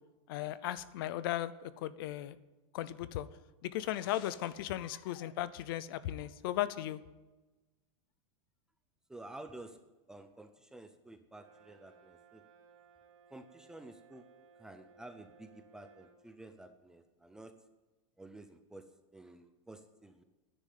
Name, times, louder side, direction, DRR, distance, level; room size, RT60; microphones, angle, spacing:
voice 1, 0.3-2.4 2.7-3.3 3.6-7.0, left 13 dB, 45° left, 16 dB, 0.6 m, -36 dB
voice 2, 9.1-9.8 10.1-12.4 13.3-14.2 14.6-17.5 18.2-18.8 19.1-20.2, right 2 dB, 5° right, 8 dB, 0.5 m, -51 dB
Brass instrument, 11.3-16.2, right 5 dB, 90° right, 2.5 m, -61 dB
10.5 x 9.9 x 9.3 m, 1.1 s
supercardioid pair, 175°, 16 cm